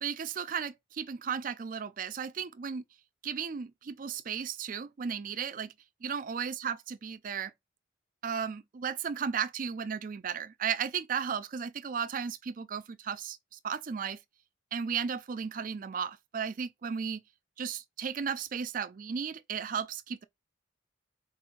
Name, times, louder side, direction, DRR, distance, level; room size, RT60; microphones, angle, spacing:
voice 1, 0.0-2.8 3.2-5.7 6.0-7.5 8.2-13.4 13.6-14.2 14.7-17.2 17.6-20.2, right 7 dB, 45° right, 0.4 m, -35 dB
4.6 x 3.9 x 2.5 m
head